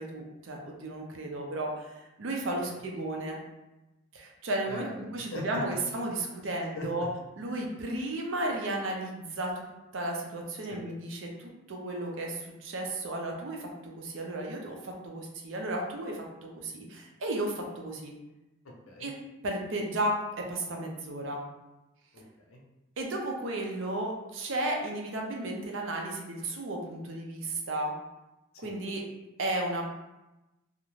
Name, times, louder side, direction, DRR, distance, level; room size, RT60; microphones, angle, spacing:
voice 1, 0.0-3.4 4.1-7.1 7.4-13.7 14.0-18.1 19.0-19.1 19.4-21.4 23.0-27.9 28.6-29.0 29.4-29.8, right 1 dB, 65° right, 0 dB, 0.5 m, -34 dB
voice 2, 4.7-5.4 6.4-7.1 10.7-10.8 18.6-19.1 22.1-22.6 28.5-28.7, left 2 dB, 85° left, 0 dB, 0.6 m, -43 dB
2.4 x 2.1 x 3.0 m, 1.0 s
head